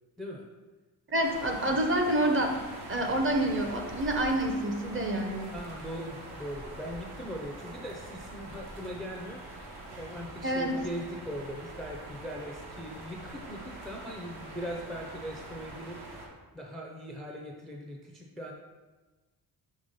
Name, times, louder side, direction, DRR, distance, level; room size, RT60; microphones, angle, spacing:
voice 1, 1.1-2.5 2.9-5.5 10.4-10.7, right 1 dB, 30° right, 2 dB, 0.7 m, -28 dB
sound 1, 1.2-16.3, right 2 dB, 75° right, 1.2 m, -44 dB
voice 2, 5.5-16.0 16.5-18.5, equal, ahead, -1 dB, 0.4 m, -40 dB
5.5 x 3.3 x 5.3 m, 1.2 s
wide cardioid pair, 175°, 39 cm